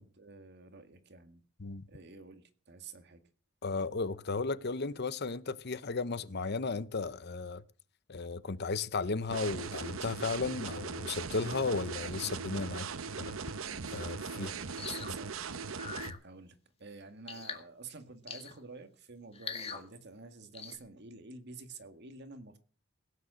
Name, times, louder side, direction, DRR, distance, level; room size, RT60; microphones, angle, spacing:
voice 1, 0.0-1.4 1.9-3.2 12.7-12.9 14.3-15.4 15.8-22.6, right 4 dB, 55° right, 2.0 m, -50 dB
voice 2, 3.6-7.6 8.1-12.9 13.2-13.4 13.9-14.5 16.1-16.2, left 4 dB, 55° left, 0.8 m, -35 dB
sound 1, 9.3-16.1, right 5 dB, 80° right, 0.9 m, -40 dB
sound 2, 14.8-15.1 15.8-16.2 17.3-17.6 18.3-18.6 19.3-19.8 20.5-20.8, left 5 dB, 30° left, 1.9 m, -42 dB
17.0 x 9.4 x 6.4 m
head